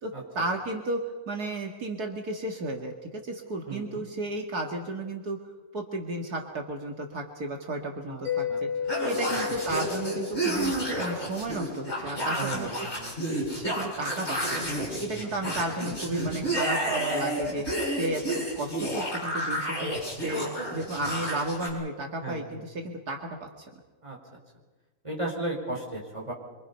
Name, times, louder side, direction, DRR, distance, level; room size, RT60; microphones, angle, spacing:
voice 1, 0.0-5.4 5.7-8.7 9.0-10.7 11.0-12.9 13.5-23.2 23.6-23.7, right 2 dB, 70° right, 2 dB, 2.6 m, -33 dB
voice 2, 3.7-4.0 8.1-8.2 8.5-8.6 9.3-9.4 12.4-13.3 22.2-22.7 24.0-24.4 25.0-26.3, right 2 dB, 20° right, -1 dB, 5.2 m, -35 dB
Mallet percussion, 8.2-11.7, left 7 dB, 55° right, 4.3 m, -34 dB
sound 1, 8.9-21.7, right 1 dB, 45° left, 7.7 m, -31 dB
26.0 x 25.0 x 5.7 m, 1.2 s
omnidirectional pair, 1.7 m